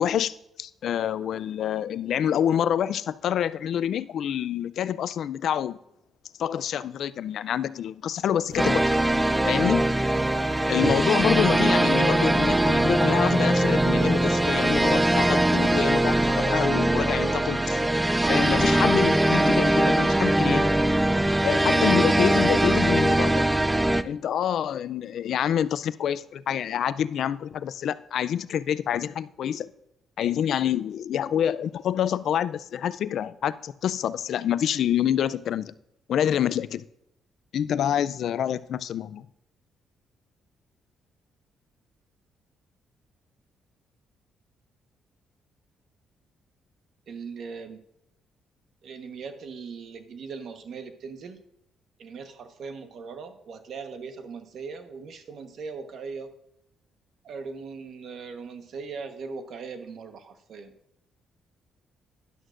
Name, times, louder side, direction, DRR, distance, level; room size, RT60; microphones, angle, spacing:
voice 1, 0.0-5.8 6.4-8.8 9.5-9.8 10.7-17.8 18.3-20.7 21.4-23.5 24.0-29.7 30.2-35.7 36.1-36.9 37.5-39.3, left 9 dB, 70° left, 16 dB, 0.4 m, -27 dB
sound 1, 8.5-16.4, right 2 dB, 40° right, 1.9 m, -38 dB
sound 2, 8.6-24.0, right 1 dB, 10° right, 0.4 m, -22 dB
voice 2, 47.1-47.8 48.8-51.4 52.0-56.3 57.2-60.7, right 5 dB, 65° right, 7 dB, 1.2 m, -39 dB
12.5 x 11.0 x 2.6 m, 0.79 s
cardioid pair, 90°, 0 cm